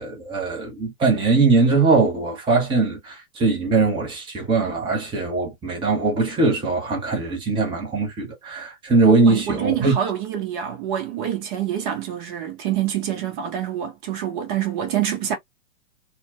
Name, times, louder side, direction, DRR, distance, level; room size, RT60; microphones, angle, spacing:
voice 1, 0.0-9.9, right 3 dB, 10° right, 1.0 m, -21 dB
voice 2, 9.2-15.3, right 10 dB, 35° right, 1.2 m, -26 dB
4.2 x 2.3 x 2.5 m
figure-of-eight pair, 115°, 43 cm